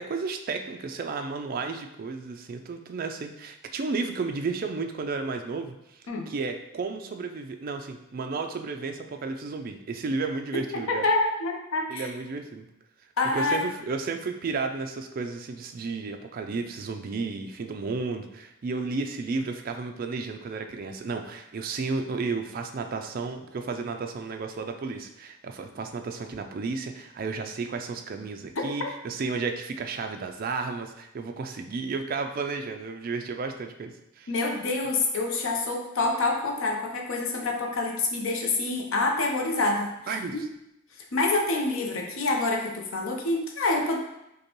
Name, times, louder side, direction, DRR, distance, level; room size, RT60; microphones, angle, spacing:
voice 1, 0.0-11.1 11.9-12.7 13.3-34.3 40.1-40.4, right 4 dB, 45° right, 5 dB, 0.3 m, -33 dB
voice 2, 10.9-12.1 13.2-13.6 28.6-28.9 34.3-40.4 41.1-44.0, left 2 dB, 75° left, 1 dB, 0.6 m, -27 dB
5.2 x 2.2 x 3.0 m, 0.85 s
head